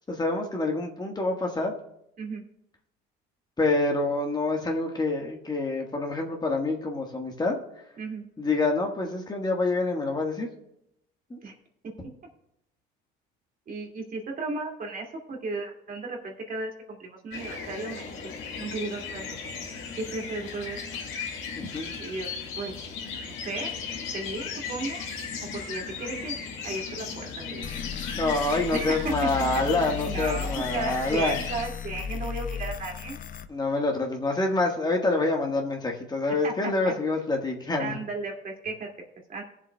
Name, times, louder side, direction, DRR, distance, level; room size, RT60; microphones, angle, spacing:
voice 1, 0.1-1.7 3.6-7.6 8.4-10.5 11.3-11.4 21.6-21.9 28.2-31.4 33.5-38.0, left 2 dB, 20° left, 1 dB, 1.5 m, -27 dB
voice 2, 13.7-16.7 17.0-18.1 18.6-19.3 20.0-20.8 22.0-22.3 22.6-22.7 23.2-23.7 24.1-25.0 25.4-26.4 26.6-27.6 28.7-29.3 30.1-33.2 36.4-36.9 37.8-38.9 39.3-39.4, right 3 dB, 45° right, 1 dB, 2.4 m, -34 dB
sound 1, 17.3-31.6, left 5 dB, 65° left, 2.3 m, -36 dB
sound 2, 27.6-33.5, left 7 dB, 40° left, 0.6 m, -35 dB
19.5 x 7.4 x 2.3 m, 0.79 s
supercardioid pair, 90°, 21 cm